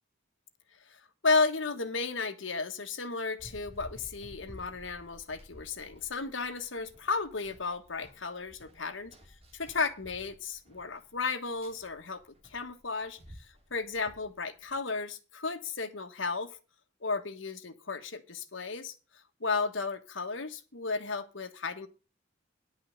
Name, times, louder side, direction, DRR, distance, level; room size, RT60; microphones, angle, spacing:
voice 1, 0.9-9.1 9.5-16.6 17.0-18.9 19.4-21.9, left 4 dB, 90° left, 7 dB, 1.5 m, -34 dB
Run, 3.4-14.8, equal, 30° right, 2.7 m, -54 dB
10.5 x 5.7 x 7.8 m, 0.33 s
head